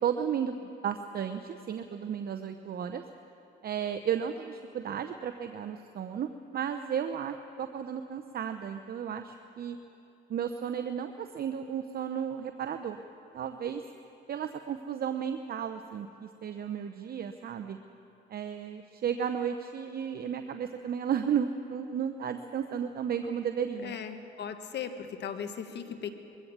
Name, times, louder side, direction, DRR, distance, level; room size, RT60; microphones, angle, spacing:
voice 1, 0.0-3.0 3.6-9.8 10.3-13.0 13.3-13.8 14.3-17.8 18.3-24.0, right 8 dB, 50° right, 7 dB, 0.8 m, -33 dB
voice 2, 23.8-26.1, left 7 dB, 60° left, 8 dB, 1.5 m, -38 dB
22.5 x 16.0 x 7.3 m, 2.9 s
cardioid pair, 85°, 20 cm